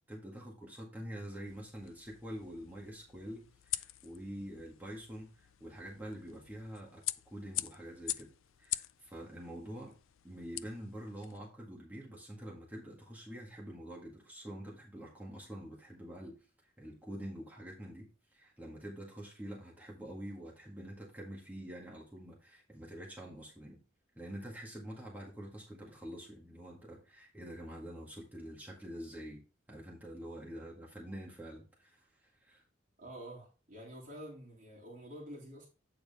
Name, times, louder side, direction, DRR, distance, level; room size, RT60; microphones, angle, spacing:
voice 1, 0.1-7.0 7.3-8.3 8.6-9.9 10.2-16.4 16.8-18.1 18.3-23.8 24.2-29.4 29.7-32.6, equal, 10° right, -3 dB, 1.8 m, -46 dB
sound 1, 1.5-11.4, left 15 dB, 80° left, 0.4 m, -44 dB
voice 2, 33.0-35.7, equal, 40° right, -5 dB, 3.0 m, -48 dB
8.9 x 4.9 x 3.6 m, 0.33 s
head